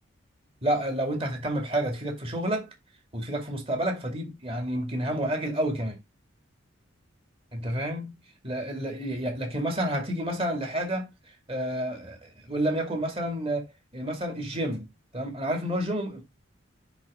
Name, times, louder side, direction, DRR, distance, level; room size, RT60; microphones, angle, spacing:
voice 1, 0.6-2.7 3.1-6.0 7.5-8.1 8.4-11.1 11.5-13.7 13.9-14.9 15.1-16.3, right 1 dB, 30° right, 2.3 m, -29 dB
9.8 x 4.0 x 3.6 m
head